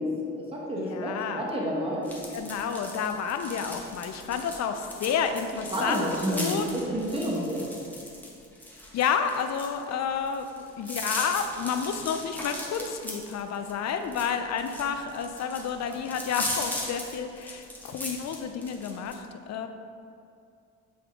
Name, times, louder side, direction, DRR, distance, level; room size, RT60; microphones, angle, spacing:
voice 1, 0.0-2.1 5.7-7.6, equal, 20° right, -4 dB, 1.1 m, -30 dB
voice 2, 0.8-1.5 2.3-6.7 8.9-19.7, left 7 dB, 60° left, 7 dB, 0.5 m, -30 dB
sound 1, 2.1-19.1, left 1 dB, 5° left, 1.1 m, -38 dB
8.5 x 3.5 x 3.5 m, 2.5 s
cardioid pair, 90°, 30 cm